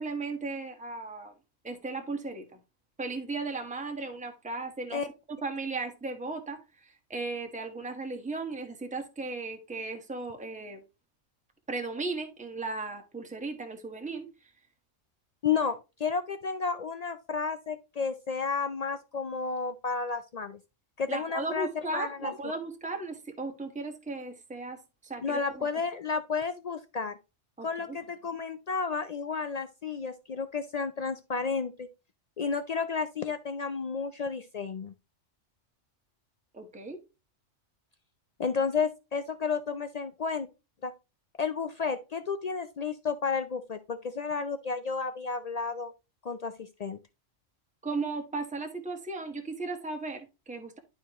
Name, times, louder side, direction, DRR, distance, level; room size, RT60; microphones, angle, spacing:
voice 1, 0.0-1.3 1.6-2.5 3.0-5.0 5.4-10.8 11.7-14.5 21.1-25.7 27.6-28.0 36.5-37.0 47.8-50.8, right 3 dB, 5° right, 1.0 m, -36 dB
voice 2, 15.4-20.6 21.0-21.7 21.9-22.3 25.2-27.2 27.6-31.9 32.4-34.9 38.4-40.5 40.8-40.9 41.4-45.9 46.2-47.0, left 5 dB, 75° left, 0.3 m, -32 dB
11.0 x 4.5 x 2.9 m
omnidirectional pair, 1.3 m